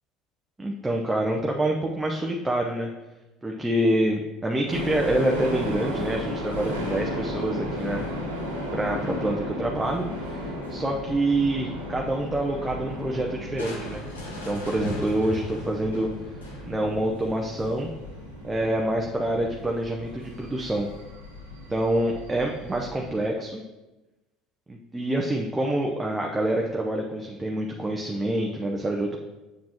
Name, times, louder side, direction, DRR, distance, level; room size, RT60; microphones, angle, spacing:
voice 1, 0.6-2.9 3.4-8.1 8.7-16.1 16.7-17.9 18.4-20.9 21.7-23.6 24.7-29.2, right 1 dB, 15° right, 0 dB, 0.7 m, -27 dB
sound 1, 4.7-23.2, left 1 dB, 90° right, 1.2 m, -35 dB
Crushing, 13.6-17.0, equal, 80° left, 1.2 m, -38 dB
7.3 x 6.3 x 2.9 m, 1.1 s
figure-of-eight pair, 65°, 0 cm